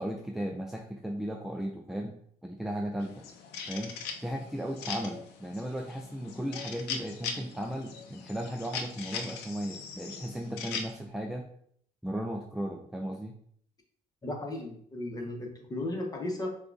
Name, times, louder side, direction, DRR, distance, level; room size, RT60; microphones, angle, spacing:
voice 1, 0.0-3.2 3.7-4.0 4.2-11.5 12.0-13.4, equal, ahead, 2 dB, 0.3 m, -36 dB
sound 1, 3.0-10.9, left 6 dB, 90° left, 0.6 m, -40 dB
voice 2, 14.2-16.5, left 1 dB, 20° left, 1 dB, 1.0 m, -35 dB
6.5 x 2.4 x 2.6 m, 0.64 s
cardioid pair, 110°, 17 cm